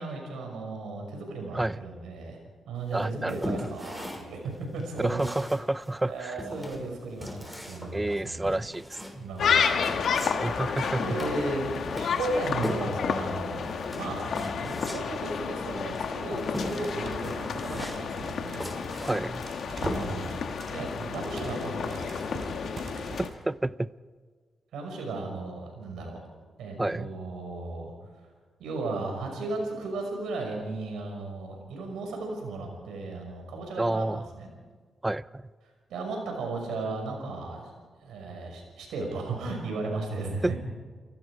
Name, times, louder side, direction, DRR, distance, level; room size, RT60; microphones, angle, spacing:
voice 1, 0.0-2.4 2.7-5.3 6.1-8.5 9.2-10.2 10.8-18.8 19.8-22.4 24.7-26.2 26.6-27.9 28.6-34.5 35.9-37.7 38.0-40.6, right 3 dB, 80° right, 6.1 m, -35 dB
sound 1, 2.9-20.4, left 1 dB, 5° left, 6.3 m, -39 dB
voice 2, 2.9-3.4 5.0-6.4 7.9-9.3 10.4-11.2 19.0-19.4 23.2-23.9 26.8-27.1 33.8-34.3 35.0-35.4 40.4-40.6, right 2 dB, 20° right, 0.7 m, -29 dB
sound 2, 9.4-23.3, left 6 dB, 70° left, 1.9 m, -31 dB
sound 3, 16.3-23.3, right 3 dB, 60° right, 5.6 m, -43 dB
29.0 x 18.5 x 5.0 m
hypercardioid pair, 45°, 0 cm